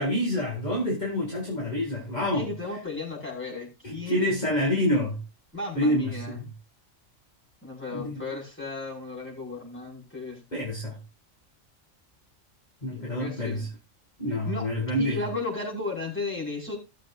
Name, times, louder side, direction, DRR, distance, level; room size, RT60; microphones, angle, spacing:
voice 1, 0.0-2.5 3.8-5.2 5.7-6.5 7.9-8.2 10.5-11.0 12.8-13.7 14.2-15.2, left 1 dB, 35° left, 2.4 m, -27 dB
voice 2, 2.3-4.5 5.5-6.4 7.6-10.4 12.9-13.7 14.3-14.7 15.0-16.8, left 3 dB, 10° left, 5.2 m, -35 dB
17.5 x 7.5 x 2.5 m
omnidirectional pair, 1.3 m